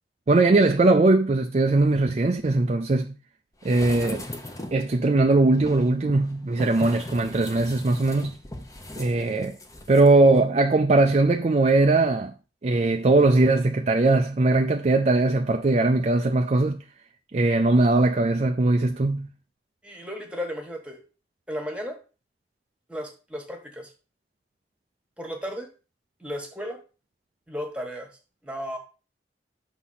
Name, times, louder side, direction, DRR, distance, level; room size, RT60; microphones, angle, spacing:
voice 1, 0.3-3.2 3.6-4.3 4.7-8.4 9.0-9.6 9.9-12.3 12.6-16.8 17.3-19.3, right 2 dB, 40° right, 0.4 m, -20 dB
sound 1, 3.6-4.9 5.6-10.1 10.4-10.5, left 1 dB, 20° left, 0.9 m, -38 dB
voice 2, 19.8-21.0 21.5-22.0 22.9-23.9 25.2-25.7 26.2-26.8 27.5-28.1 28.4-28.8, equal, 5° right, 1.4 m, -34 dB
6.1 x 4.1 x 5.6 m
head